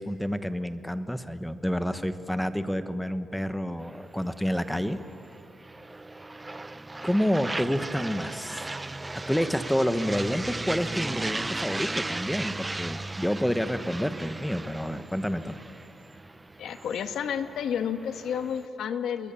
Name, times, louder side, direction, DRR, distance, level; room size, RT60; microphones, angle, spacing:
voice 1, 0.0-5.0 7.0-8.6 9.3-15.5, equal, 5° left, 11 dB, 1.1 m, -29 dB
sound 1, 3.8-18.7, right 2 dB, 15° right, 0.5 m, -36 dB
voice 2, 16.6-19.3, left 8 dB, 80° left, 9 dB, 1.4 m, -31 dB
28.5 x 22.0 x 7.1 m, 2.8 s
cardioid pair, 110°, 0 cm